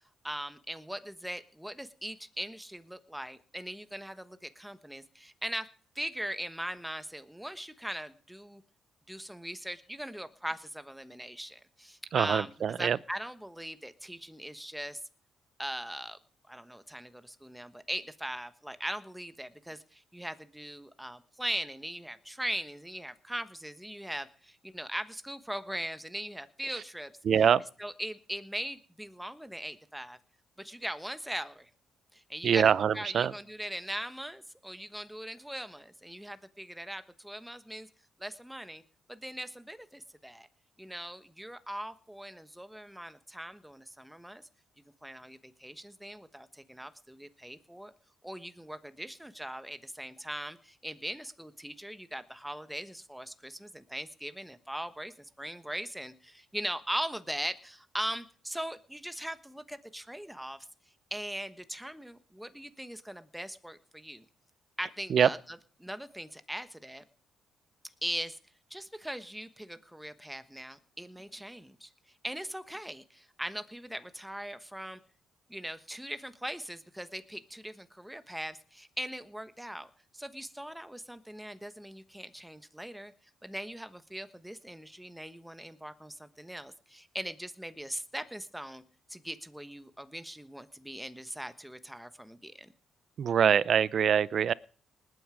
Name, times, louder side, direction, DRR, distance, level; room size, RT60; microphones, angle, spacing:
voice 1, 0.2-5.7 5.9-8.6 9.1-12.5 12.8-15.0 15.6-16.2 16.5-27.1 27.8-30.2 30.6-31.7 32.1-37.9 38.2-38.8 39.1-40.5 40.8-44.4 45.0-47.9 48.2-60.6 61.1-64.2 64.8-67.0 68.0-68.4 68.7-71.9 72.2-75.0 75.5-83.1 83.4-88.8 89.1-92.7, equal, 5° right, 1.2 m, -40 dB
voice 2, 12.1-13.0 26.7-26.8 27.2-27.6 32.4-33.3 65.1-65.3 93.2-94.5, right 8 dB, 55° right, 0.6 m, -24 dB
20.0 x 9.4 x 5.1 m
cardioid pair, 90°, 0 cm